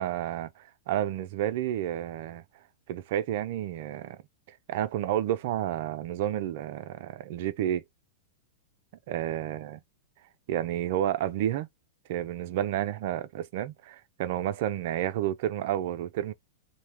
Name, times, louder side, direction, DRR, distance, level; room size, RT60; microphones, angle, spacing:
voice 1, 0.0-2.4 2.9-4.2 4.5-7.8 9.1-9.8 10.5-11.7 12.1-16.3, right 11 dB, 60° right, 0.4 m, -30 dB
2.7 x 2.2 x 3.2 m
hypercardioid pair, 110°, 0 cm